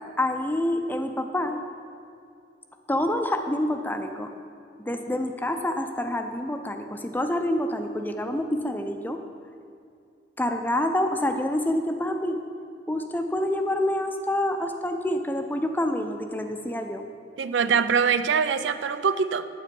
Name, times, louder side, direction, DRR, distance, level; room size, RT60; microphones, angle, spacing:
voice 1, 0.2-1.6 2.9-4.3 4.8-9.2 10.4-12.4 12.9-17.0, left 1 dB, 10° left, 6 dB, 0.5 m, -27 dB
voice 2, 17.4-19.5, right 6 dB, 75° right, 12 dB, 0.4 m, -23 dB
9.3 x 7.9 x 5.3 m, 2.4 s
head